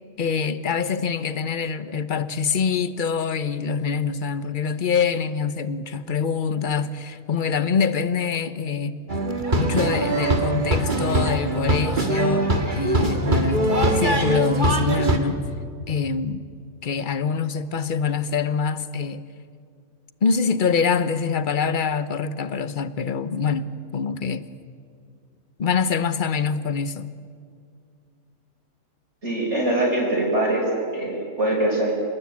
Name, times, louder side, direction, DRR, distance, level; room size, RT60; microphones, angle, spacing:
voice 1, 0.2-9.0 9.5-15.4 15.9-16.4 16.8-19.2 20.2-24.4 25.6-27.1, left 6 dB, 40° left, 1.0 m, -25 dB
sound 1, 9.1-15.2, right 1 dB, 30° right, 2.0 m, -22 dB
voice 2, 29.2-31.9, right 1 dB, 45° right, 5.9 m, -23 dB
28.5 x 20.0 x 8.7 m
omnidirectional pair, 1.6 m